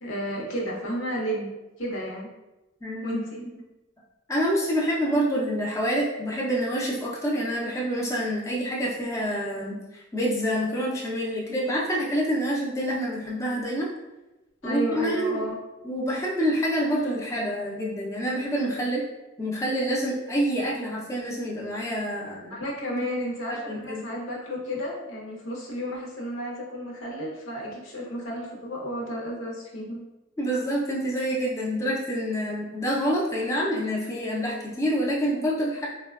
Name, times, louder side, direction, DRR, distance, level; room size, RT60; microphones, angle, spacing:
voice 1, 0.0-2.3 3.0-3.4 14.6-15.6 22.5-30.0, equal, 85° left, -3 dB, 0.8 m, -32 dB
voice 2, 2.8-3.5 4.3-13.9 14.6-15.4 15.8-19.0 19.4-22.5 22.9-23.0 23.5-24.0 30.4-35.9, equal, 15° left, -5 dB, 0.5 m, -27 dB
4.1 x 2.2 x 2.3 m, 1.0 s
head